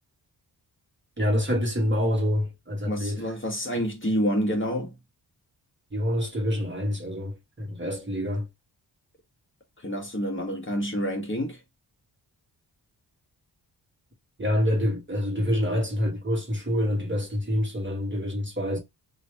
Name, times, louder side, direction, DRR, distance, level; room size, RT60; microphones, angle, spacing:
voice 1, 1.2-3.2 5.9-8.5 14.4-18.8, left 1 dB, 25° right, 1.4 m, -26 dB
voice 2, 2.9-4.9 9.8-11.6, equal, 30° left, 1.3 m, -28 dB
3.0 x 2.7 x 3.4 m
cardioid pair, 65°, 42 cm